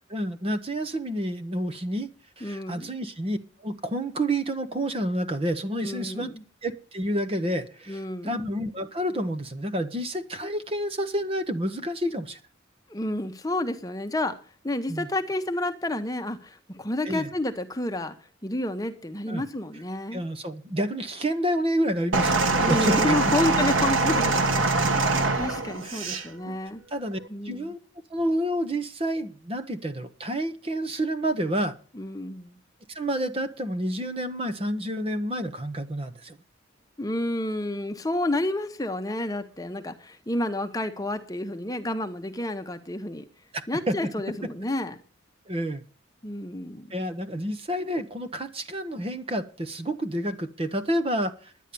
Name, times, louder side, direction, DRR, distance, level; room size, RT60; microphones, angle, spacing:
voice 1, 0.1-2.1 2.4-6.3 6.6-12.4 14.9-15.1 17.0-17.3 19.3-19.4 20.1-22.4 22.7-23.2 25.8-26.6 26.9-27.8 28.1-31.7 32.9-36.4 43.5-44.0 45.5-45.8 46.9-51.7, right 1 dB, 30° right, 0.9 m, -29 dB
voice 2, 2.4-2.9 5.8-6.4 7.9-8.4 12.9-14.3 14.6-18.1 18.4-20.2 22.6-26.8 27.3-27.7 31.9-32.6 37.0-43.2 43.7-44.9 46.2-47.0, left 1 dB, 20° left, 0.9 m, -30 dB
sound 1, 22.1-26.3 27.1-27.3, right 3 dB, 80° right, 1.6 m, -23 dB
10.0 x 10.0 x 6.8 m
head